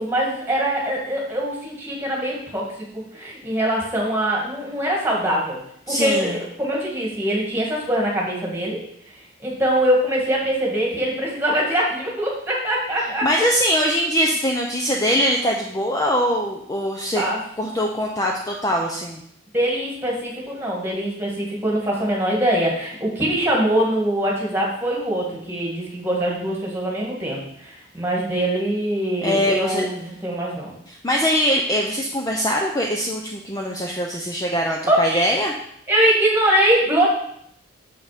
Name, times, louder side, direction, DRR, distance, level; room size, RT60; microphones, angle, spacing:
voice 1, 0.0-2.7 2.9-5.6 5.9-8.8 9.4-13.5 17.2-17.4 19.5-30.8 34.9-35.3 35.9-37.1, right 1 dB, 10° right, -3 dB, 1.9 m, -23 dB
voice 2, 5.9-6.4 13.2-17.2 17.6-19.2 29.2-29.9 30.9-35.5, equal, 15° left, 0 dB, 0.6 m, -22 dB
6.7 x 5.8 x 5.0 m, 0.71 s
head